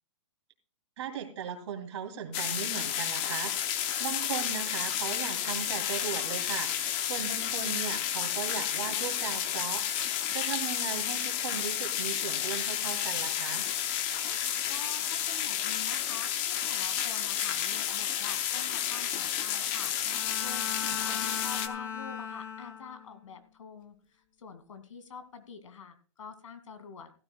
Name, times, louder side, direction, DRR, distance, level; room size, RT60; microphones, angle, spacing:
voice 1, 1.0-6.7 7.0-9.9 10.3-13.7 20.8-21.0, right 8 dB, 60° right, 4 dB, 2.9 m, -37 dB
sound 1, 2.3-21.7, left 10 dB, 25° left, 0.7 m, -31 dB
voice 2, 14.7-19.9 20.3-20.7 21.1-27.1, left 6 dB, 85° left, 11 dB, 2.3 m, -47 dB
Bowed string instrument, 20.0-23.2, left 7 dB, 45° left, 2.0 m, -39 dB
15.5 x 13.0 x 2.3 m, 0.39 s
hypercardioid pair, 160°, 16 cm